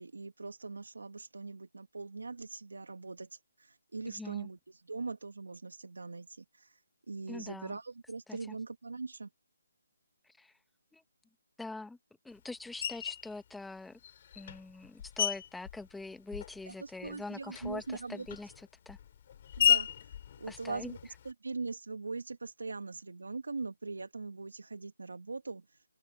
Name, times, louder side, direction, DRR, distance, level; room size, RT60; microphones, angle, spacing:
voice 1, 0.0-6.8 7.1-9.3 16.7-18.3 19.6-21.0 21.2-25.8, right 3 dB, 85° right, 1.5 m, -41 dB
voice 2, 4.0-4.5 7.3-7.8 8.3-8.6 10.4-10.5 10.9-11.0 11.6-12.0 12.2-14.0 14.4-19.0 20.5-20.9, left 2 dB, 5° left, 1.1 m, -44 dB
Screech, 12.8-13.3 14.0-16.7 17.0-21.3, left 9 dB, 35° left, 4.1 m, -34 dB
open air
hypercardioid pair, 165°, 0 cm